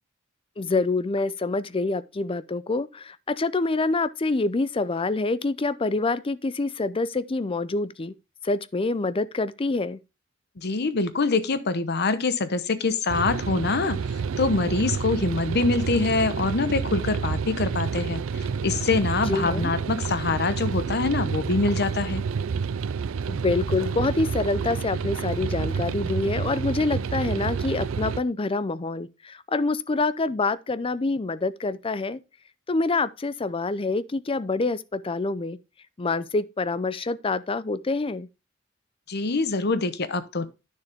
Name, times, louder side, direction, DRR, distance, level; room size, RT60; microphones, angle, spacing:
voice 1, 0.6-8.1 8.4-10.0 19.3-19.7 23.3-32.2 32.7-35.6 36.0-38.3, left 3 dB, 25° left, 0.5 m, -26 dB
voice 2, 10.6-14.0 14.4-22.2 39.1-40.4, left 3 dB, 55° left, 0.9 m, -25 dB
sound 1, 13.1-28.2, right 6 dB, 75° right, 0.4 m, -29 dB
9.5 x 6.9 x 3.5 m
head